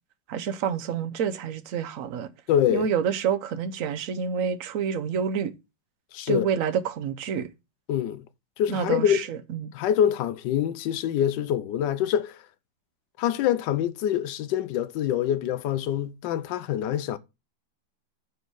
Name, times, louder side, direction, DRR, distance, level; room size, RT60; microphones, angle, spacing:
voice 1, 0.3-2.3 2.7-5.5 6.3-7.5 8.7-9.7, right 7 dB, 60° right, 0.9 m, -28 dB
voice 2, 2.5-2.9 6.1-6.5 7.9-8.2 8.6-9.2 9.7-12.4 13.2-17.2, left 10 dB, 75° left, 1.2 m, -25 dB
5.4 x 4.8 x 6.1 m
omnidirectional pair, 2.1 m